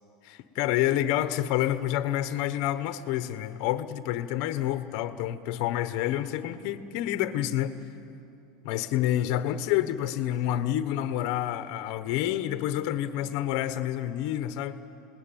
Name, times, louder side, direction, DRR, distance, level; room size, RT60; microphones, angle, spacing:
voice 1, 0.2-7.7 8.6-14.8, left 12 dB, 45° left, 11 dB, 1.1 m, -28 dB
27.5 x 20.0 x 9.2 m, 2.8 s
supercardioid pair, 170°, 3 cm